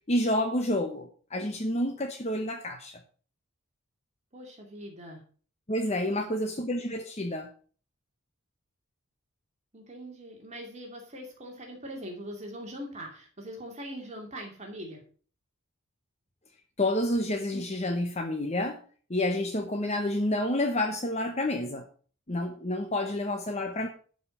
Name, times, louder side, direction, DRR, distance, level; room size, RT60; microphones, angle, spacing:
voice 1, 0.1-3.0 5.7-7.5 16.8-18.8 19.1-21.8 22.3-23.9, left 1 dB, 30° left, 6 dB, 0.9 m, -29 dB
voice 2, 4.3-5.2 6.1-6.4 9.7-15.0, equal, 30° right, 1 dB, 2.5 m, -42 dB
12.0 x 5.3 x 7.0 m, 0.42 s
head